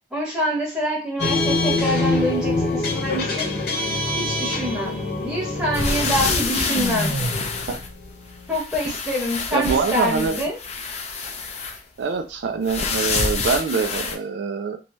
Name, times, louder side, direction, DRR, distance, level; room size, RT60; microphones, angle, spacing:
voice 1, 0.1-3.5 4.2-4.9 5.2-7.1 8.5-10.6, equal, 5° right, -3 dB, 0.9 m, -26 dB
sound 1, 1.2-8.6, left 2 dB, 60° left, 0.9 m, -25 dB
sound 2, 5.7-8.2 8.5-11.8 12.6-14.1, left 4 dB, 35° left, 0.4 m, -27 dB
voice 2, 9.5-10.4 12.0-14.8, right 5 dB, 75° right, 6 dB, 0.4 m, -24 dB
2.7 x 2.3 x 2.9 m, 0.33 s
head